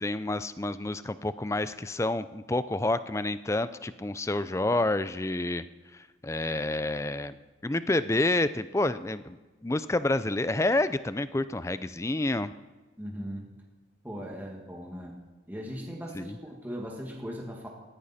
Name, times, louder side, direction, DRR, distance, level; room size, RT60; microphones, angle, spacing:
voice 1, 0.0-5.7 6.2-7.4 7.6-9.4 9.6-12.5 16.1-16.4, left 2 dB, 15° left, 14 dB, 0.4 m, -28 dB
voice 2, 13.0-13.5 14.0-15.2 15.5-17.7, equal, 10° right, -1 dB, 1.8 m, -38 dB
19.0 x 15.5 x 4.2 m, 1.2 s
head